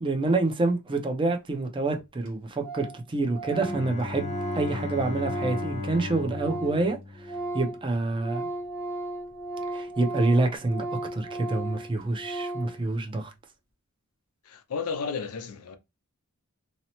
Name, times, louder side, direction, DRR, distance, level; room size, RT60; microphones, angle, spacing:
voice 1, 0.0-7.0 7.5-8.5 9.7-10.8 11.1-13.3, right 2 dB, 25° right, 0.5 m, -27 dB
Organ, 1.7-1.8 2.0-2.1 2.3-2.4 2.6-3.0 3.3-6.9 7.1-12.8, right 2 dB, 65° right, 0.9 m, -36 dB
Bowed string instrument, 3.5-7.8, left 3 dB, 30° left, 0.7 m, -35 dB
voice 2, 14.4-15.8, left 5 dB, 90° left, 0.5 m, -33 dB
2.8 x 2.0 x 2.8 m
head